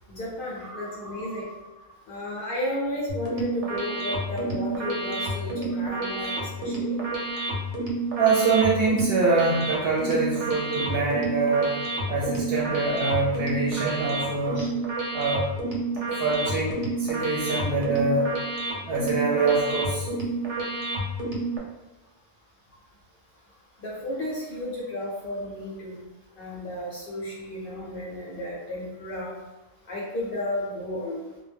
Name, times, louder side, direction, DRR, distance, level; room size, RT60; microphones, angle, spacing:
voice 1, 0.1-1.5 2.1-7.0 14.5-14.7 23.8-26.0 26.4-29.3 29.9-31.2, left 1 dB, 60° left, -5 dB, 0.7 m, -33 dB
voice 2, 0.6-1.4 8.2-11.8 12.1-14.7 15.1-15.5 16.2-18.3 18.9-20.1, right 3 dB, 60° right, -5 dB, 0.7 m, -25 dB
sound 1, 3.1-21.6, right 2 dB, 85° right, 0.9 m, -30 dB
2.2 x 2.1 x 3.3 m, 1.1 s
omnidirectional pair, 1.2 m